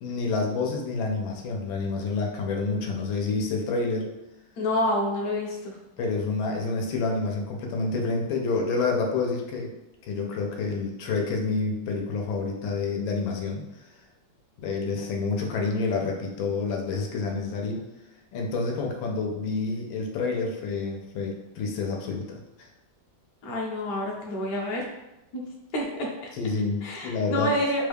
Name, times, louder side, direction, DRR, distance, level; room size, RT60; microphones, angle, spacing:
voice 1, 0.0-4.1 6.0-9.7 10.0-13.9 14.6-17.8 18.3-22.4 26.3-27.5, left 4 dB, 85° left, 1 dB, 1.4 m, -28 dB
voice 2, 4.6-5.8 23.4-24.9 25.3-25.4 25.7-26.1 26.8-27.9, left 1 dB, 65° left, -2 dB, 1.0 m, -28 dB
3.5 x 2.3 x 3.3 m, 0.95 s
omnidirectional pair, 2.1 m